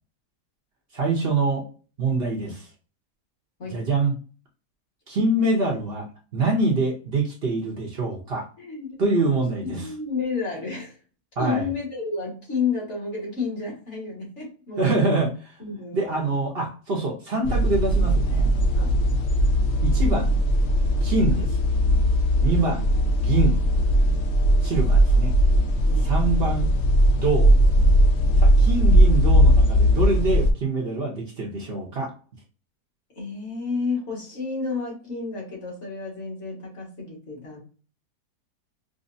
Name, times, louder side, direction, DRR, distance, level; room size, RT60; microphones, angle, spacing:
voice 1, 0.9-1.6 2.0-2.7 3.7-4.1 5.1-6.0 6.3-8.5 9.0-9.9 11.4-11.7 14.8-15.3 15.9-18.5 19.8-20.3 21.0-21.6 22.4-23.6 24.6-25.3 26.0-26.7 27.1-27.5 28.4-32.1, right 3 dB, 45° right, -2 dB, 0.8 m, -25 dB
voice 2, 8.6-9.0 9.6-11.0 11.4-15.2 15.6-16.4 18.8-18.9 21.3-21.4 22.6-22.7 25.8-26.1 33.2-37.6, left 4 dB, 45° left, -3 dB, 1.8 m, -31 dB
sound 1, 17.4-30.5, equal, 65° left, 0.7 m, -19 dB
5.0 x 2.0 x 2.6 m, 0.38 s
omnidirectional pair, 1.7 m